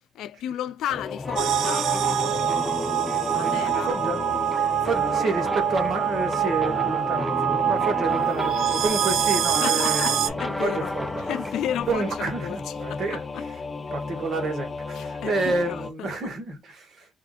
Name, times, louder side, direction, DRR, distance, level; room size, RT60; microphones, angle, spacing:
voice 1, 0.1-1.9 3.3-3.9 9.6-10.9 11.2-12.1 12.4-13.4 15.0-16.1, left 10 dB, 85° left, 0.4 m, -33 dB
Singing / Musical instrument, 0.9-15.9, left 4 dB, 30° left, 0.7 m, -34 dB
sound 1, 1.2-11.8, equal, 5° right, 0.3 m, -34 dB
sound 2, 1.4-10.3, right 10 dB, 80° right, 0.4 m, -25 dB
voice 2, 3.8-4.2 4.8-10.1 10.4-11.2 11.9-13.2 13.9-17.1, right 3 dB, 60° right, 1.5 m, -29 dB
3.6 x 2.5 x 2.4 m
cardioid pair, 90°, 0 cm